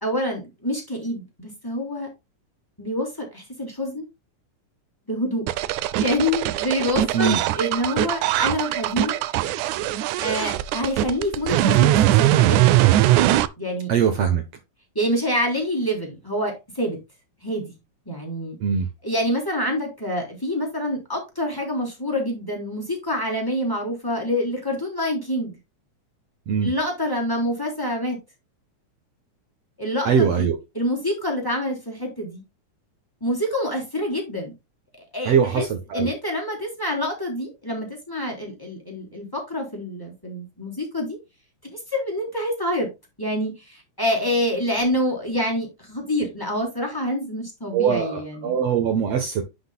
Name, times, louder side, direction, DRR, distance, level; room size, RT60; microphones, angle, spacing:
voice 1, 0.0-2.1 2.8-4.0 5.1-5.5 6.0-9.2 10.2-12.8 13.6-13.9 14.9-17.0 17.4-17.7 18.0-18.6 19.0-25.6 26.6-28.2 29.8-32.4 33.2-34.5 35.1-35.7 35.9-41.2 41.6-42.9 43.2-48.6, equal, 5° left, 3.4 m, -26 dB
sound 1, 5.5-13.5, right 14 dB, 85° right, 2.1 m, -20 dB
voice 2, 13.9-14.4 18.6-18.9 26.5-26.7 30.1-30.6 35.2-36.1 47.7-49.4, right 7 dB, 65° right, 2.0 m, -21 dB
11.0 x 6.2 x 2.2 m
omnidirectional pair, 3.4 m